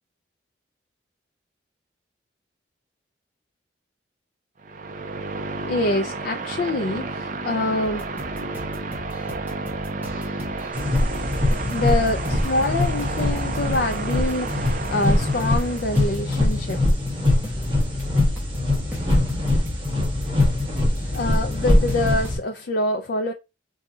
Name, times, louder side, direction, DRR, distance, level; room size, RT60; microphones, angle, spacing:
sound 1, 4.6-16.1, right 3 dB, 45° right, 0.5 m, -31 dB
voice 1, 5.4-8.1 11.6-16.8 21.1-23.3, left 2 dB, 55° left, 0.4 m, -25 dB
sound 2, 7.8-22.4, equal, 10° right, 0.9 m, -39 dB
sound 3, 10.7-22.4, left 1 dB, 30° right, 1.2 m, -22 dB
4.7 x 2.7 x 2.3 m
head